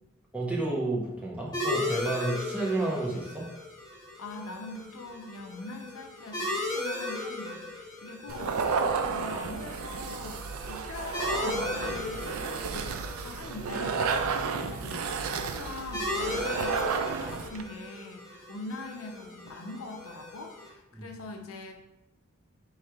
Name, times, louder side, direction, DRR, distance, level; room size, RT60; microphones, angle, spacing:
voice 1, 0.3-3.5 20.9-21.1, right 2 dB, 5° right, -4 dB, 0.8 m, -31 dB
sound 1, 1.5-20.7, left 1 dB, 20° left, 1.0 m, -37 dB
voice 2, 4.2-21.7, left 2 dB, 75° left, 3 dB, 0.6 m, -42 dB
sound 2, 8.3-17.6, right 5 dB, 85° right, 0.4 m, -32 dB
3.2 x 3.1 x 4.7 m, 0.92 s
head